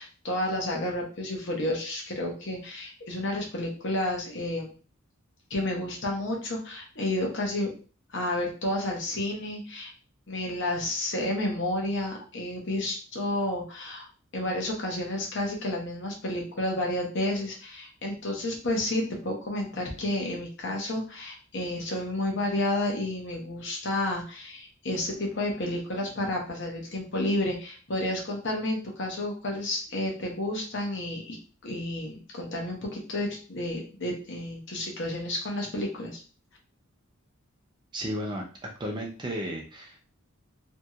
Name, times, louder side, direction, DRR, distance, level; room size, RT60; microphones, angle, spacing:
voice 1, 0.0-4.7 5.5-7.7 8.1-9.9 10.3-14.1 14.3-31.4 31.6-36.2, left 1 dB, 55° left, 0 dB, 0.8 m, -31 dB
voice 2, 37.9-38.4 38.8-40.0, equal, 20° right, 0 dB, 0.5 m, -33 dB
2.9 x 2.8 x 2.3 m, 0.37 s
head